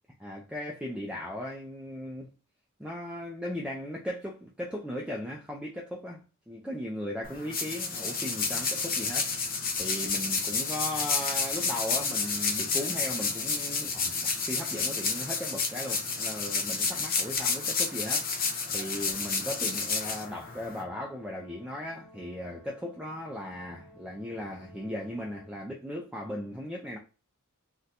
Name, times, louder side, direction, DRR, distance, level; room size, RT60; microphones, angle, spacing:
voice 1, 0.2-2.3 2.8-27.0, left 1 dB, 5° right, 0.4 m, -37 dB
sound 1, 7.2-20.8, left 4 dB, 45° left, 0.6 m, -30 dB
Brass instrument, 19.2-25.6, left 1 dB, 60° left, 0.9 m, -55 dB
2.6 x 2.2 x 3.9 m
head